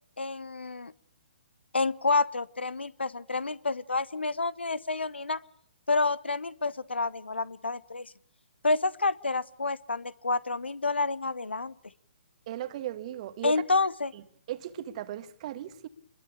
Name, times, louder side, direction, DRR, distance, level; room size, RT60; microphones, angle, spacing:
voice 1, 0.2-0.9 1.7-5.4 5.9-8.1 8.6-11.7 13.4-14.1, left 3 dB, 75° left, 1.0 m, -29 dB
voice 2, 12.5-13.5 14.5-15.9, right 12 dB, 35° right, 1.7 m, -36 dB
26.0 x 21.5 x 7.2 m
figure-of-eight pair, 130°, 6 cm